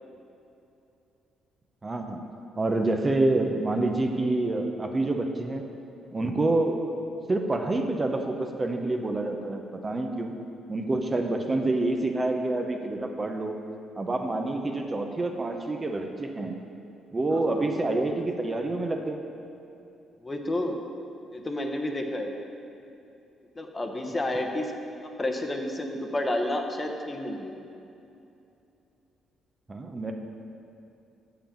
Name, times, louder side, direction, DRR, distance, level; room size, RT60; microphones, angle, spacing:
voice 1, 1.8-2.3 2.6-5.6 6.1-7.0 7.3-10.4 10.7-13.6 14.0-16.6 17.1-19.2 29.7-30.1, right 2 dB, 25° right, 4 dB, 0.7 m, -27 dB
voice 2, 17.3-17.7 20.2-20.8 21.3-22.3 23.6-24.7 25.0-27.6, left 1 dB, 25° left, 3 dB, 0.8 m, -30 dB
7.0 x 5.8 x 7.0 m, 2.8 s
cardioid pair, 90°, 0 cm